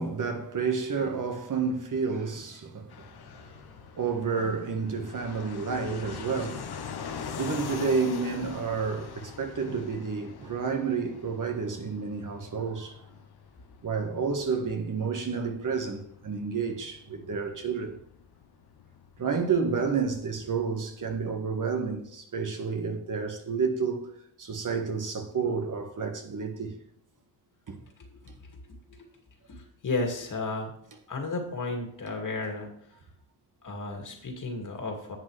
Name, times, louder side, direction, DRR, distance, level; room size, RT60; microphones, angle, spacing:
voice 1, 0.0-3.1 3.4-3.5 4.0-6.7 7.4-13.0 13.8-17.9 19.2-24.1 24.4-26.7 27.7-27.8, right 5 dB, 45° right, 1.4 m, -30 dB
Fixed-wing aircraft airplane, 2.9-21.3, left 6 dB, 60° left, 1.1 m, -44 dB
voice 2, 29.5-30.7 31.1-32.7 33.6-35.2, left 3 dB, 45° left, 2.4 m, -33 dB
10.5 x 7.5 x 3.3 m
cardioid pair, 85°, 44 cm